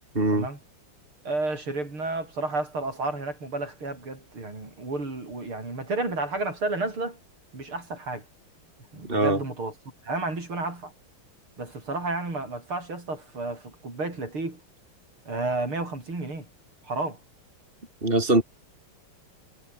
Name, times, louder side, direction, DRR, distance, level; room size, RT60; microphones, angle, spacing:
voice 1, 0.2-0.5 9.1-9.4 18.0-18.4, right 2 dB, 25° right, 5.7 m, -22 dB
voice 2, 1.2-7.2 7.5-8.2 8.9-9.7 10.0-10.9 11.6-14.6 15.3-16.5 16.8-17.2, right 2 dB, 80° right, 8.1 m, -31 dB
omnidirectional pair, 2.3 m